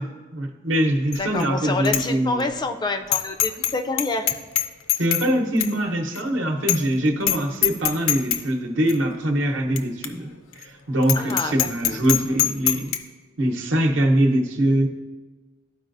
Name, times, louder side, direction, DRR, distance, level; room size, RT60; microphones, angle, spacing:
voice 1, 0.0-2.4 5.0-10.3 10.6-12.9 13.4-14.9, right 1 dB, 65° right, 3 dB, 0.9 m, -23 dB
Bicycle bell, 1.1-1.5 1.8-2.0 2.4-2.5 3.1-3.7 4.0-5.3 5.6-5.7 6.1-6.2 6.7-6.9 7.2-7.4 7.6-8.4 8.9-9.0 9.8-9.9 10.0-10.1 10.5-10.6 11.0-13.0, left 11 dB, 75° left, 0.5 m, -22 dB
voice 2, 1.2-4.4 11.1-12.0, left 3 dB, 20° left, 6 dB, 0.4 m, -27 dB
13.0 x 4.7 x 2.6 m, 1.3 s
head